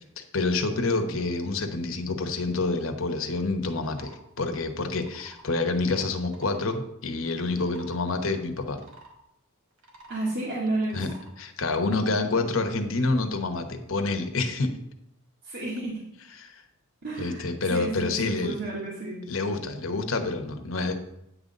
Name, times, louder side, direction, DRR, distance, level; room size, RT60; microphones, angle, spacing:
voice 1, 0.2-8.8 10.9-14.7 16.4-16.6 17.2-18.5 19.3-20.9, left 3 dB, 70° left, 6 dB, 1.1 m, -28 dB
sound 1, 3.8-4.2 4.8-5.5 6.1-6.8 7.4-8.1 8.7-9.1 9.7-10.3 10.8-11.3, right 2 dB, 75° right, 1.9 m, -51 dB
voice 2, 10.1-11.0 15.4-16.2 17.0-19.2, right 2 dB, 60° right, -6 dB, 2.1 m, -31 dB
9.7 x 4.0 x 7.4 m, 0.81 s
head